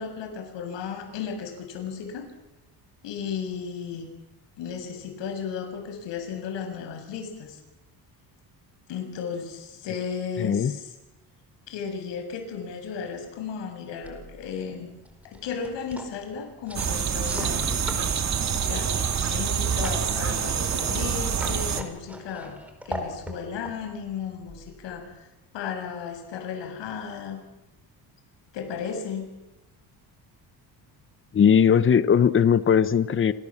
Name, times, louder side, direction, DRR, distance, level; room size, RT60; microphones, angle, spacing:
voice 1, 0.0-2.3 3.0-4.1 4.6-7.6 8.9-10.9 11.7-14.9 15.2-18.1 18.6-18.9 19.3-22.6 22.9-25.1 25.5-27.4 28.5-29.3, left 6 dB, 80° left, 5 dB, 7.1 m, -34 dB
voice 2, 10.4-10.7 31.3-33.3, left 7 dB, 30° left, 15 dB, 1.1 m, -19 dB
sound 1, 14.0-25.1, equal, 5° right, 4.8 m, -41 dB
sound 2, 16.7-21.8, right 7 dB, 40° right, 2.6 m, -26 dB
29.5 x 27.0 x 7.4 m, 0.97 s
cardioid pair, 145°, 43 cm